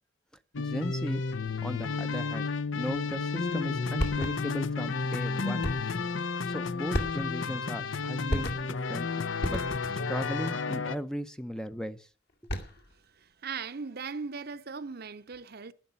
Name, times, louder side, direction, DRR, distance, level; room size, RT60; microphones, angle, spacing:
sound 1, 0.5-11.0, left 4 dB, 70° left, 0.8 m, -32 dB
voice 1, 0.6-1.2 1.6-5.7 6.5-9.6 10.1-12.1, equal, 5° left, 0.5 m, -37 dB
sound 2, 4.0-4.6 5.6-6.0 6.9-7.5 8.3-8.9 9.4-10.1 12.3-12.9, equal, 50° left, 2.5 m, -33 dB
voice 2, 13.4-15.7, right 5 dB, 50° right, 0.7 m, -38 dB
12.0 x 10.5 x 7.0 m
head